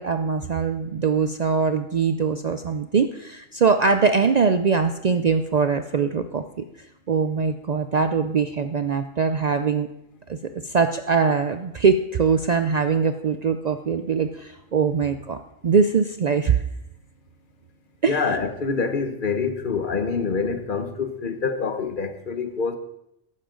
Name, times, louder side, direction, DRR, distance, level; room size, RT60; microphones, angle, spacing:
voice 1, 0.0-6.4 7.1-9.9 10.3-10.4 10.6-15.4 15.6-16.6 18.0-18.2, right 5 dB, 80° right, 0.3 m, -22 dB
voice 2, 18.0-22.8, left 5 dB, 40° left, 1.1 m, -26 dB
13.5 x 12.0 x 3.8 m
omnidirectional pair, 1.4 m